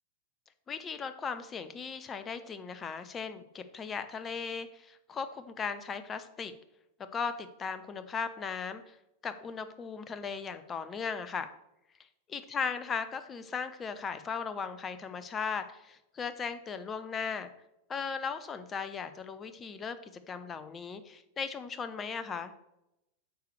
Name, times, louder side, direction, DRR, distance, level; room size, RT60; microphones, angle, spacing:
voice 1, 0.7-6.5 7.1-9.0 9.2-11.5 12.3-17.5 17.9-22.5, left 6 dB, 20° left, 11 dB, 0.7 m, -37 dB
9.2 x 6.7 x 3.3 m, 0.87 s
figure-of-eight pair, 90°, 0 cm